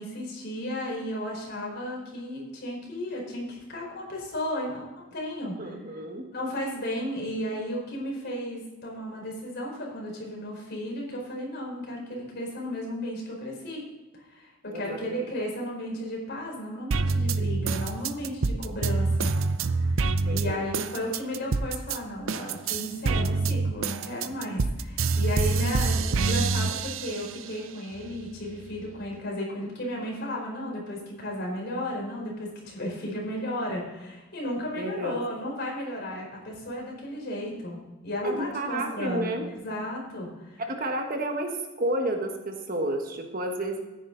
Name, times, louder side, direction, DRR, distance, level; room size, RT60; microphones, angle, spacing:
voice 1, 0.0-6.0 6.3-13.8 14.1-19.3 20.3-40.6, left 1 dB, 50° left, -1 dB, 4.7 m, -34 dB
voice 2, 5.6-6.3 14.7-15.3 20.2-20.6 34.8-35.2 38.2-39.5 40.6-41.5 41.8-43.8, right 1 dB, 45° right, 3 dB, 1.4 m, -31 dB
sound 1, 16.9-22.0 22.3-27.5 27.9-28.9, right 3 dB, 70° right, 0.6 m, -26 dB
14.0 x 10.0 x 4.0 m, 1.1 s
head